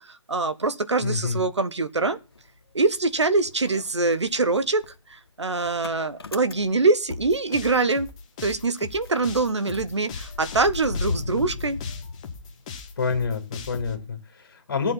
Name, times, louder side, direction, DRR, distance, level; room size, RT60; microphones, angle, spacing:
voice 1, 0.0-2.2 2.7-8.1 8.4-11.8, right 3 dB, 60° right, 1.2 m, -24 dB
voice 2, 1.0-1.4 13.0-14.9, left 5 dB, 35° left, 3.3 m, -27 dB
Motor vehicle (road) / Engine starting, 1.9-3.2 3.5-8.1 8.4-8.5 8.8-12.9, left 3 dB, 50° left, 1.0 m, -36 dB
sound 1, 7.1-13.9, left 5 dB, 15° left, 1.0 m, -40 dB
14.5 x 7.7 x 4.3 m
figure-of-eight pair, 155°, 17 cm